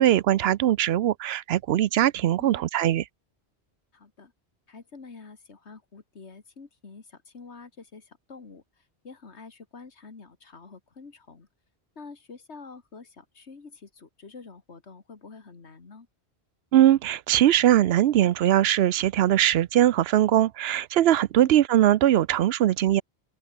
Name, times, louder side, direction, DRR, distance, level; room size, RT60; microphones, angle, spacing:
voice 1, 0.0-3.0 16.7-23.0, right 12 dB, 70° right, 0.8 m, -21 dB
voice 2, 3.9-4.3 4.7-11.5 12.0-16.1 21.4-21.6, left 4 dB, 85° left, 2.3 m, -47 dB
open air
omnidirectional pair, 1.1 m